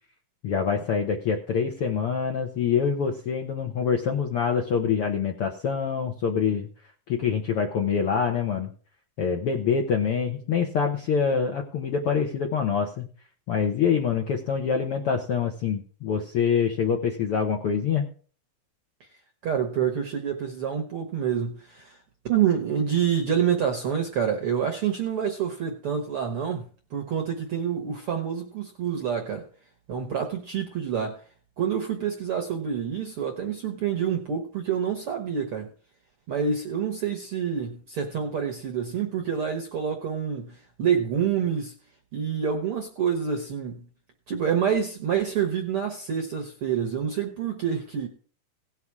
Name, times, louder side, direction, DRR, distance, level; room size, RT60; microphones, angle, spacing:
voice 1, 0.4-6.7 7.1-8.7 9.2-13.0 13.5-18.0, left 6 dB, 65° left, 1.5 m, -25 dB
voice 2, 19.4-22.0 22.2-29.5 29.9-31.2 31.6-35.7 36.3-41.7 42.1-43.8 44.3-48.1, right 8 dB, 60° right, 1.5 m, -27 dB
17.5 x 5.8 x 4.8 m
omnidirectional pair, 4.0 m